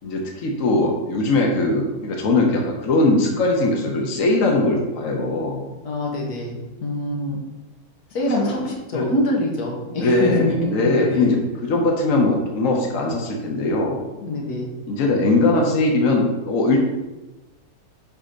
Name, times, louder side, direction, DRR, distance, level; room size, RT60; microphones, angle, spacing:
voice 1, 0.0-5.6 8.3-8.5 8.9-9.1 10.0-14.0 14.9-16.8, left 2 dB, 60° left, 0 dB, 1.3 m, -20 dB
voice 2, 5.8-7.4 8.1-11.3 14.2-14.7, left 1 dB, 85° left, -1 dB, 1.7 m, -25 dB
7.5 x 2.8 x 5.1 m, 1.1 s
omnidirectional pair, 1.6 m